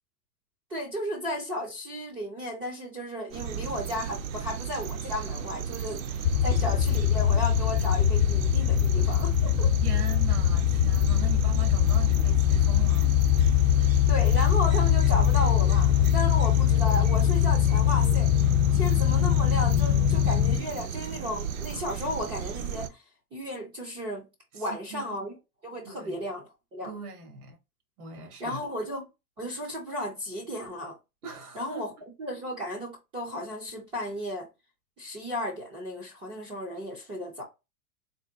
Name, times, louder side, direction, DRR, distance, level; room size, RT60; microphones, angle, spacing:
voice 1, 0.7-9.7 14.1-18.3 18.7-23.0 23.3-24.3 24.5-25.4 25.6-26.4 26.7-26.9 28.4-29.1 29.4-30.9 31.5-31.9 32.2-34.5 35.0-37.4, left 1 dB, 15° right, 0.3 m, -34 dB
sound 1, 3.3-22.9, right 7 dB, 65° right, 0.6 m, -35 dB
sound 2, 6.2-20.6, left 11 dB, 60° left, 0.5 m, -22 dB
voice 2, 9.8-13.2 24.5-25.1 25.8-26.2 26.8-27.6 28.0-28.6 31.2-31.9, right 5 dB, 80° right, 1.5 m, -41 dB
3.8 x 2.2 x 3.3 m
supercardioid pair, 145°, 44 cm